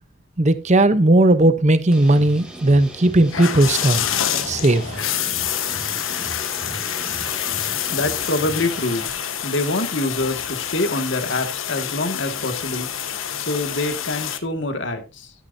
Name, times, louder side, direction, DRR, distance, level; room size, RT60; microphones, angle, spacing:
voice 1, 0.4-4.0 4.5-4.8, right 2 dB, 35° right, 0.8 m, -16 dB
sound 1, 1.9-9.0, right 1 dB, 5° right, 2.2 m, -37 dB
sound 2, 3.3-14.4, left 9 dB, 80° left, 1.2 m, -27 dB
voice 2, 7.9-12.9 13.3-15.3, left 2 dB, 60° left, 2.0 m, -25 dB
13.0 x 9.4 x 2.7 m
head